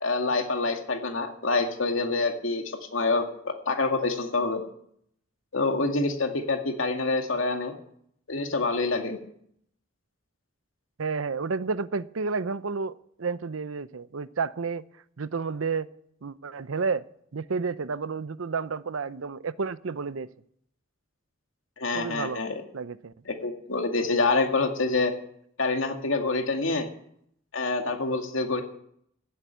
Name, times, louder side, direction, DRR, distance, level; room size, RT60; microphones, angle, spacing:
voice 1, 0.0-4.6 5.5-7.7 8.3-9.2 21.8-22.6 23.4-25.1 25.6-26.9 27.5-28.6, left 3 dB, 75° left, 2.2 m, -26 dB
voice 2, 11.0-14.8 15.2-15.9 16.2-17.0 17.3-20.3 21.9-22.4 22.7-23.1, right 4 dB, 85° right, 0.7 m, -31 dB
16.0 x 8.1 x 9.5 m
head